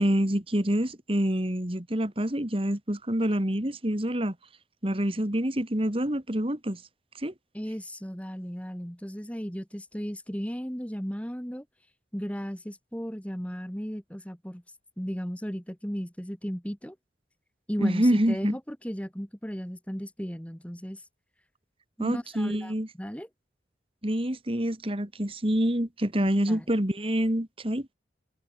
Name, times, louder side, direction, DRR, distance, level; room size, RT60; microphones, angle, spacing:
voice 1, 0.0-4.3 4.8-6.8 7.2-7.3 17.8-18.6 22.0-22.9 24.0-27.9, equal, 30° right, 2.3 m, -27 dB
voice 2, 7.5-11.6 12.1-14.6 15.0-17.0 17.7-21.0 22.0-23.3 26.2-26.6, equal, 5° left, 2.7 m, -35 dB
head